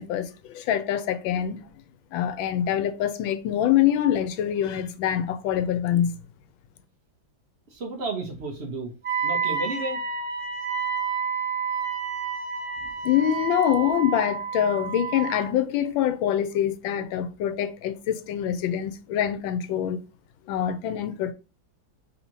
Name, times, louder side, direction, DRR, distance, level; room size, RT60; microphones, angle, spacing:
voice 1, 0.0-1.6 2.1-6.2 13.0-20.0 20.5-21.3, left 10 dB, 85° left, 1.4 m, -25 dB
voice 2, 7.7-8.9 9.2-10.0 12.8-12.9, right 2 dB, 60° right, 0.6 m, -32 dB
Wind instrument woodwind instrument, 9.0-15.5, right 6 dB, 35° right, 1.0 m, -29 dB
3.6 x 2.8 x 4.4 m
omnidirectional pair, 2.1 m